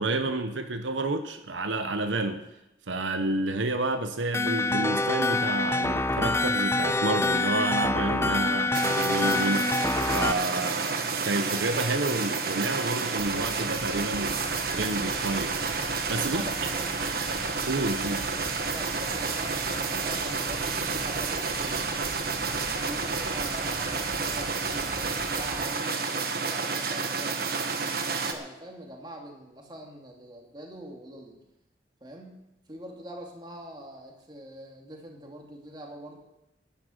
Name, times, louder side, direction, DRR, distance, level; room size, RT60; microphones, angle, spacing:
voice 1, 0.0-2.4 2.9-15.6 16.1-16.7 17.7-18.3, right 2 dB, 85° right, 8 dB, 1.0 m, -30 dB
sound 1, 4.3-10.3, left 2 dB, 15° left, 0.4 m, -26 dB
sound 2, 8.7-28.3, right 4 dB, 55° right, 1.3 m, -30 dB
sound 3, 13.2-25.7, equal, 85° left, 6.8 m, -42 dB
voice 2, 16.2-17.5 18.7-22.2 22.7-31.4 32.0-36.2, right 1 dB, 25° right, 0 dB, 2.5 m, -44 dB
11.5 x 10.0 x 7.9 m, 0.91 s
head